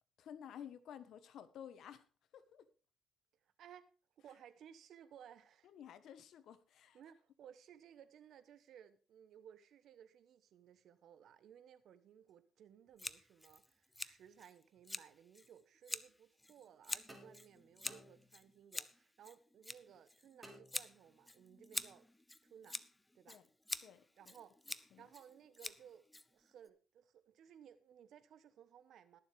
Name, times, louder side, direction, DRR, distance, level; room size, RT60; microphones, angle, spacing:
voice 1, 0.2-2.1 2.3-2.7 5.6-7.0 23.3-23.4 23.8-24.3 24.9-25.1, left 9 dB, 75° left, 1.3 m, -53 dB
voice 2, 3.6-3.9 4.2-5.7 6.9-22.1 22.4-22.8 23.1-23.4 24.1-29.2, right 9 dB, 70° right, 1.1 m, -60 dB
Scissors, 13.0-26.7, left 1 dB, 10° left, 0.6 m, -48 dB
sound 1, 17.1-18.7 20.4-21.4, equal, 10° right, 3.8 m, -59 dB
21.0 x 7.3 x 3.5 m
cardioid pair, 90°, 0 cm